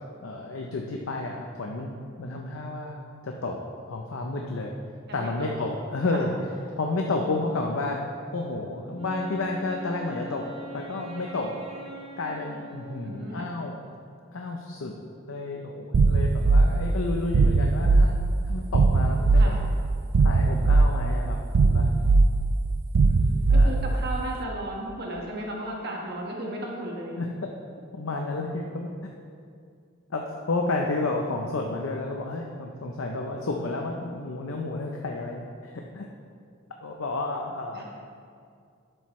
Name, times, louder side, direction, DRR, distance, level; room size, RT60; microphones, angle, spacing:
voice 1, 0.2-3.0 3.2-3.6 3.9-4.7 5.1-6.3 6.8-8.0 8.3-10.5 10.7-11.6 12.2-13.7 14.3-14.9 15.3-18.1 18.4-19.5 20.2-22.0 23.5-23.7 27.2-27.5 27.9-28.9 30.1-36.1 36.8-37.8, left 2 dB, 80° left, 1 dB, 0.7 m, -31 dB
voice 2, 5.1-5.5 6.1-6.2 13.0-13.5 19.3-19.6 23.0-27.2 37.7-37.8, right 1 dB, 55° right, -1 dB, 1.5 m, -35 dB
Wind instrument woodwind instrument, 8.9-13.7, equal, 30° right, 0.9 m, -42 dB
sound 1, 15.9-24.2, right 3 dB, 80° right, 0.4 m, -20 dB
11.5 x 7.8 x 3.2 m, 2.3 s
head